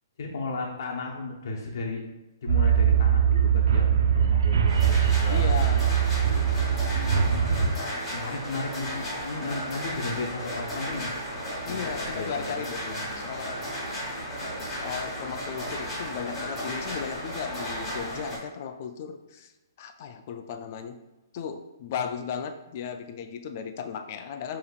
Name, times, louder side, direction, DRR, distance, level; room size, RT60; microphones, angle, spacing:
voice 1, 0.2-2.0 2.4-5.4 6.9-7.6 8.1-11.4 11.7-12.5 12.9-13.3 14.5-14.7, left 3 dB, 55° left, -1 dB, 0.8 m, -35 dB
sound 1, 2.5-7.8, right 8 dB, 75° right, 0.4 m, -22 dB
sound 2, 4.7-18.4, equal, 5° left, 1.1 m, -34 dB
voice 2, 5.3-5.8 11.6-12.8 13.2-13.6 14.7-19.5 19.8-21.0 21.3-24.6, left 7 dB, 35° left, 7 dB, 0.3 m, -35 dB
6.7 x 2.9 x 2.4 m, 1.1 s
hypercardioid pair, 165°, 2 cm